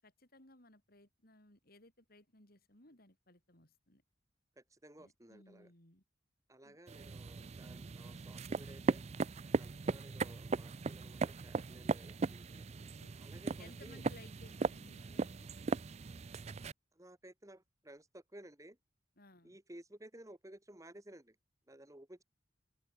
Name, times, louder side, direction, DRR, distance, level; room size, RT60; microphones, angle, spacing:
voice 1, 0.0-4.0 5.0-6.0 6.6-6.8 13.0-15.5 19.2-19.6, left 2 dB, 55° left, 6.7 m, -61 dB
voice 2, 4.6-5.7 6.5-9.0 9.5-12.7 13.2-14.0 16.9-18.8 19.4-21.4 21.7-22.2, right 1 dB, 15° right, 2.1 m, -56 dB
sound 1, 6.9-16.7, right 4 dB, 35° right, 0.4 m, -38 dB
open air
head